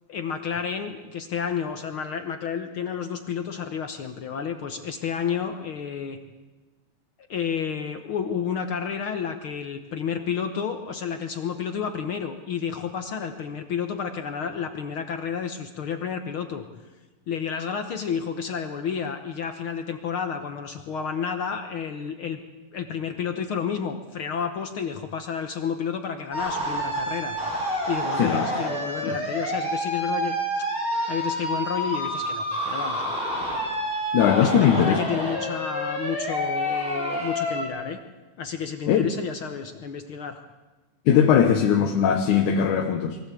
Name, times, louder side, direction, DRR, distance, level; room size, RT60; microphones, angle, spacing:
voice 1, 0.1-6.2 7.3-16.6 17.3-22.4 22.7-27.4 27.9-30.3 30.6-30.7 31.1-33.0 34.4-38.0 38.4-40.4, left 7 dB, 60° left, 7 dB, 1.5 m, -31 dB
sound 1, 26.3-37.7, equal, ahead, 6.8 m, -28 dB
voice 2, 28.2-28.5 29.0-29.2 34.1-35.0 38.9-39.1 41.1-43.2, left 8 dB, 85° left, 3 dB, 2.6 m, -20 dB
23.0 x 16.0 x 8.3 m, 1.2 s
omnidirectional pair, 3.5 m